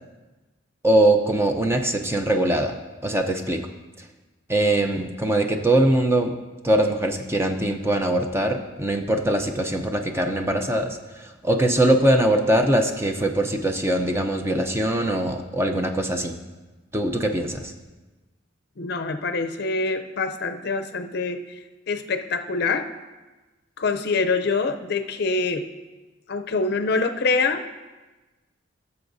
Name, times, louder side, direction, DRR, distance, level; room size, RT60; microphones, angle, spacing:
voice 1, 0.8-2.7 3.0-3.6 4.5-6.3 6.6-16.4 16.9-17.7, right 1 dB, 15° right, 4 dB, 0.6 m, -22 dB
voice 2, 18.8-21.4 21.9-22.9 23.8-25.6 26.3-27.6, left 4 dB, 55° left, 7 dB, 0.5 m, -25 dB
15.5 x 6.9 x 2.6 m, 1.2 s
head